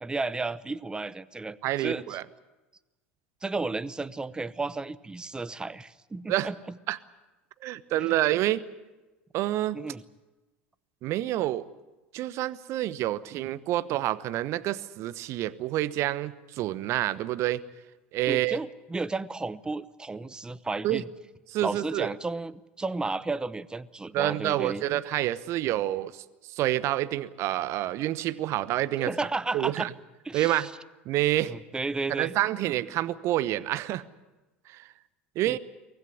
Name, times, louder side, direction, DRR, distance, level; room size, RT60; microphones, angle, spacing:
voice 1, 0.0-2.2 3.4-6.8 8.0-8.1 9.7-10.0 18.3-21.1 21.6-24.8 29.0-29.9 30.2-30.7 31.4-32.4 35.4-35.6, right 3 dB, 15° right, 18 dB, 0.9 m, -33 dB
voice 2, 1.6-2.2 6.3-6.5 6.9-7.0 7.6-8.6 9.3-9.8 11.0-11.7 12.1-17.6 18.1-18.6 20.8-21.0 21.5-22.1 24.1-29.1 29.5-29.9 30.3-30.7 31.1-31.5 32.2-34.0 34.7-34.9 35.3-35.6, right 14 dB, 50° right, 17 dB, 1.0 m, -28 dB
24.0 x 17.0 x 9.8 m, 1.1 s
figure-of-eight pair, 75°, 6 cm